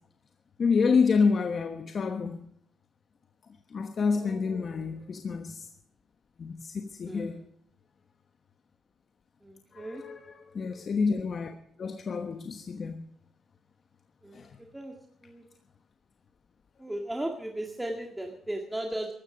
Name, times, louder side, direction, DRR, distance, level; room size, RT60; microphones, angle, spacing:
voice 1, 0.6-2.5 3.7-5.7 6.4-7.4 9.7-13.0 14.3-14.6, left 5 dB, 45° left, 1.2 m, -28 dB
voice 2, 4.1-5.0 7.1-7.5 9.4-10.0 14.2-14.9 15.2-15.5 16.8-19.1, right 1 dB, 10° right, 2.0 m, -37 dB
16.0 x 13.0 x 5.1 m
cardioid pair, 90°, 0 cm